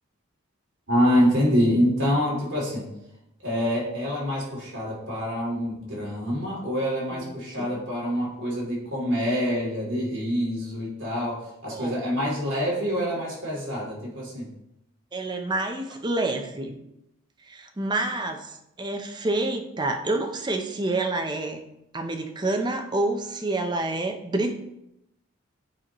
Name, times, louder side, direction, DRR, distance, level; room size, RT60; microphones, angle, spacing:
voice 1, 0.9-2.9 3.4-14.5, equal, 55° right, -5 dB, 2.6 m, -26 dB
voice 2, 7.1-7.7 11.7-12.0 15.1-16.8 17.5-21.6 21.9-24.6, right 2 dB, 20° right, 4 dB, 0.5 m, -28 dB
8.8 x 4.5 x 3.0 m, 0.85 s
head